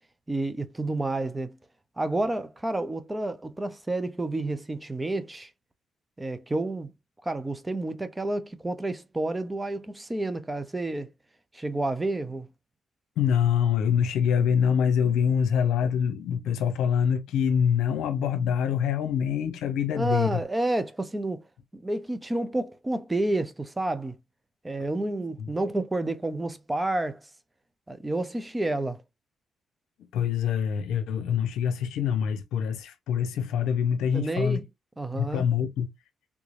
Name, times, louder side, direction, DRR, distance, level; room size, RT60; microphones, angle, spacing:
voice 1, 0.3-1.6 2.0-5.5 6.2-6.9 7.3-11.1 11.5-12.5 19.9-21.4 21.7-24.2 24.6-27.2 27.9-29.0 34.1-34.6 35.0-35.4, right 2 dB, 15° right, 0.6 m, -30 dB
voice 2, 13.2-20.4 25.4-25.5 30.1-34.6 35.1-35.9, left 8 dB, 85° left, 0.7 m, -25 dB
3.5 x 3.0 x 2.5 m
cardioid pair, 70°, 0 cm